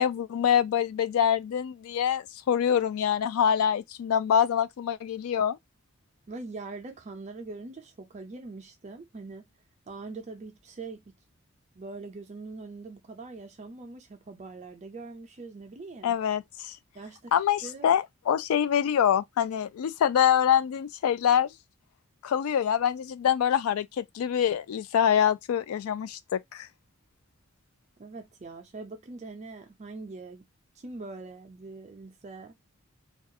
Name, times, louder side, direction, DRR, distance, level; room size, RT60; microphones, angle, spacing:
voice 1, 0.0-5.6 16.0-16.7 17.3-21.5 22.2-26.7, left 8 dB, 85° left, 0.3 m, -25 dB
voice 2, 6.3-9.5 9.9-11.1 11.7-16.1 16.9-17.3 17.6-17.9 28.0-30.4 30.8-32.5, right 3 dB, 35° right, 0.4 m, -42 dB
2.3 x 2.3 x 2.6 m
head